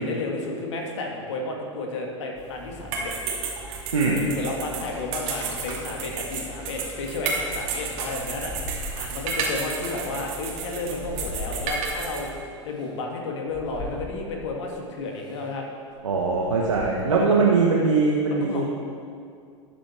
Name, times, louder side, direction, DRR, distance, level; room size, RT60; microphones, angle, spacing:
voice 1, 0.0-3.1 4.1-8.5 9.0-12.3 12.6-15.7 17.1-17.5 18.3-18.6, left 3 dB, 70° left, 1 dB, 2.0 m, -32 dB
sound 1, 2.4-12.3, right 4 dB, 50° right, 2.4 m, -32 dB
sound 2, 5.4-6.6 7.5-9.4 9.9-12.1 12.7-12.9 13.5-14.6 15.2-15.5 15.9-17.2, left 3 dB, 25° left, 2.2 m, -40 dB
voice 2, 16.0-18.6, right 4 dB, 85° right, -2 dB, 1.2 m, -21 dB
13.5 x 8.5 x 4.4 m, 2.3 s
hypercardioid pair, 95°, 16 cm